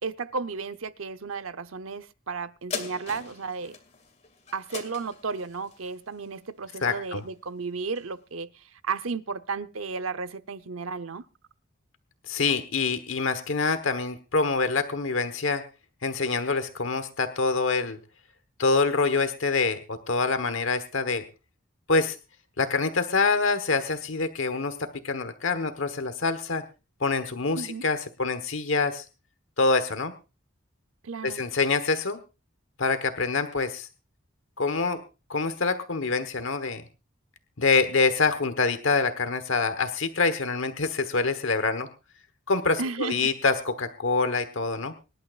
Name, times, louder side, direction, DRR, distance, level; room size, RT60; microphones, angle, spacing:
voice 1, 0.0-3.8 4.5-11.2 27.5-27.8 31.0-31.4 42.8-43.3, right 4 dB, 90° right, 0.8 m, -33 dB
sound 1, 2.7-7.5 7.9-8.0, left 5 dB, 35° left, 2.3 m, -40 dB
voice 2, 6.8-7.2 12.3-15.6 16.0-18.0 18.6-21.2 21.9-22.2 22.6-26.6 27.0-29.0 29.6-30.1 31.2-32.2 32.8-33.9 34.6-35.0 35.3-36.8 37.6-41.9 42.5-44.9, left 4 dB, 75° left, 1.2 m, -26 dB
25.0 x 11.5 x 2.5 m
head